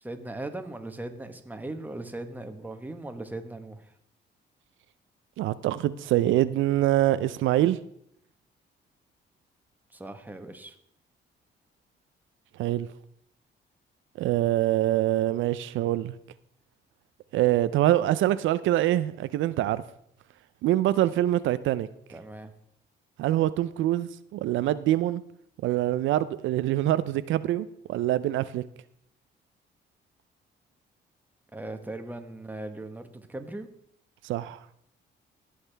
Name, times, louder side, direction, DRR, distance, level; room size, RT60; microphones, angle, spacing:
voice 1, 0.0-3.9 9.9-10.8 22.1-22.5 31.5-33.7, right 2 dB, 10° right, 1.1 m, -38 dB
voice 2, 5.4-7.8 12.6-12.9 14.2-16.1 17.3-19.8 20.6-21.9 23.2-25.2 25.6-28.6 34.2-34.6, right 14 dB, 80° right, 0.4 m, -25 dB
16.0 x 6.4 x 3.3 m
cardioid pair, 90°, 20 cm